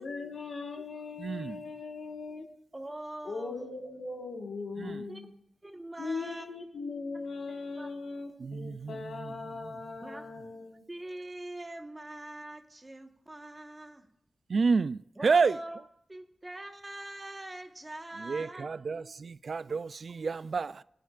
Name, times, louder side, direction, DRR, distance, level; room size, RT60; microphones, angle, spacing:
voice 1, 0.0-2.5 3.2-5.3 6.0-10.8, left 3 dB, 75° left, 1.5 m, -39 dB
voice 2, 1.2-1.6 4.8-5.1 8.4-9.3 9.6-9.7 14.5-15.6 18.2-20.8, right 4 dB, 60° right, 0.3 m, -30 dB
voice 3, 2.7-3.8 5.1-5.2 5.6-6.4 7.8-7.9 10.0-10.3 10.9-14.0 15.2-15.8 16.1-19.1, right 1 dB, 20° right, 1.3 m, -43 dB
20.0 x 10.0 x 2.5 m
wide cardioid pair, 105°, 0 cm